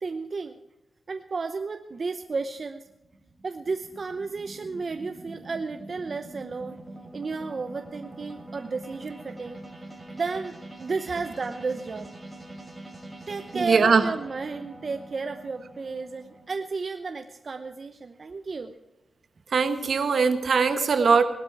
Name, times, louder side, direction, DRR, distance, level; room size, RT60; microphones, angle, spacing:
voice 1, 0.0-0.6 1.1-2.9 3.4-6.8 7.1-9.6 10.1-12.1 13.3-18.8, right 4 dB, 50° right, 7 dB, 0.8 m, -33 dB
sound 1, 2.2-16.5, right 1 dB, 15° right, 6.4 m, -44 dB
voice 2, 13.5-14.1 19.5-21.2, right 5 dB, 70° right, 9 dB, 1.4 m, -21 dB
18.5 x 12.5 x 4.7 m, 0.96 s
wide cardioid pair, 115°, 0 cm